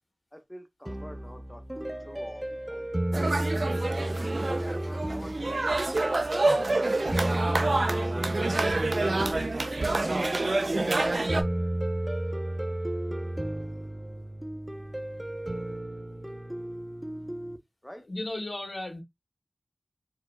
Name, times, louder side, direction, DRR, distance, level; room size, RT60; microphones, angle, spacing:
voice 1, 0.3-3.1 3.9-6.4 6.6-10.8 17.8-18.0, equal, 10° left, 1.2 m, -47 dB
sound 1, 0.9-17.6, right 1 dB, 10° right, 1.0 m, -33 dB
sound 2, 3.1-11.4, right 2 dB, 65° right, 0.6 m, -27 dB
voice 2, 18.1-19.0, left 2 dB, 70° left, 2.2 m, -34 dB
4.6 x 4.2 x 2.4 m
wide cardioid pair, 45°, 0 cm